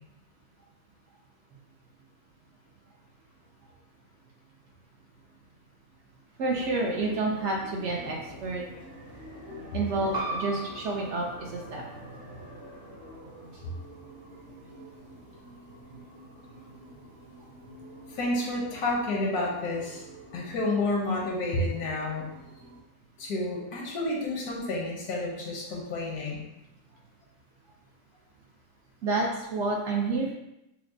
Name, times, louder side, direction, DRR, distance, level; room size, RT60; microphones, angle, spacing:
voice 1, 6.4-8.6 9.7-11.8 29.0-30.3, right 3 dB, 65° right, -1 dB, 0.7 m, -29 dB
sound 1, 6.5-22.8, equal, 85° right, 1.6 m, -47 dB
sound 2, 10.1-15.3, right 1 dB, 35° right, 0.7 m, -40 dB
voice 2, 18.2-20.0 20.3-22.3 23.2-26.4, left 2 dB, 90° left, -2 dB, 1.4 m, -30 dB
5.7 x 2.0 x 2.6 m, 0.90 s
omnidirectional pair, 1.6 m